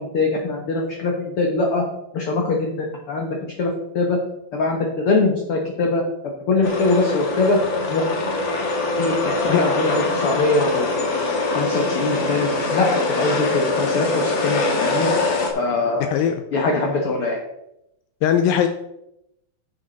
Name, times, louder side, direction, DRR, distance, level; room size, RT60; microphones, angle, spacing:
voice 1, 0.0-1.8 2.1-4.2 4.5-6.0 6.5-7.6 7.9-8.1 9.0-11.1 11.5-15.1 15.5-16.1 16.5-17.4, left 3 dB, 65° left, 0 dB, 1.4 m, -22 dB
sound 1, 6.6-15.5, left 3 dB, 50° left, 1.5 m, -23 dB
voice 2, 16.1-16.4 18.2-18.7, left 9 dB, 80° left, 7 dB, 2.3 m, -19 dB
10.5 x 7.1 x 4.1 m, 0.82 s
omnidirectional pair, 4.3 m